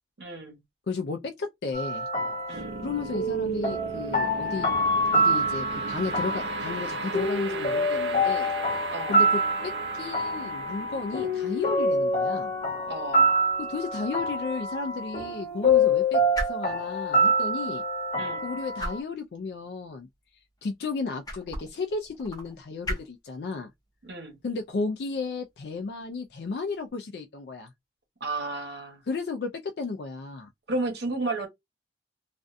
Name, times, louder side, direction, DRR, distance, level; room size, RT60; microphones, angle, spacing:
voice 1, 0.2-0.6 2.5-2.8 8.9-9.2 12.8-13.3 18.1-18.4 24.0-24.4 28.2-29.0 30.7-31.5, right 2 dB, 70° right, 1.1 m, -33 dB
voice 2, 0.9-2.1 2.5-4.7 5.1-8.5 8.8-12.5 13.6-17.8 18.4-23.7 24.4-27.7 29.1-30.5, left 4 dB, 60° left, 0.4 m, -34 dB
sound 1, 1.7-19.0, equal, 40° left, 1.0 m, -26 dB
sound 2, 2.5-13.7, right 4 dB, 85° right, 0.6 m, -38 dB
sound 3, 13.3-26.9, right 1 dB, 20° left, 0.6 m, -42 dB
2.5 x 2.2 x 2.5 m
head